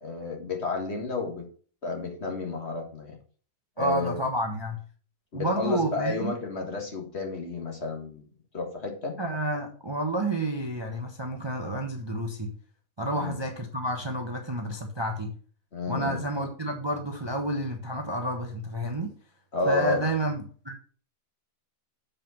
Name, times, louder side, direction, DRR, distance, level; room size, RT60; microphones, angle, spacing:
voice 1, 0.0-1.5 1.8-3.2 3.8-4.3 5.3-8.3 8.5-9.2 13.2-13.4 15.7-16.3 19.5-20.1, left 3 dB, 45° left, 2 dB, 1.8 m, -31 dB
voice 2, 3.8-4.8 5.3-6.4 9.2-12.5 13.0-15.3 15.9-19.1 19.6-20.8, right 1 dB, 20° right, 3 dB, 0.9 m, -30 dB
7.4 x 5.3 x 5.8 m, 0.43 s
omnidirectional pair, 1.7 m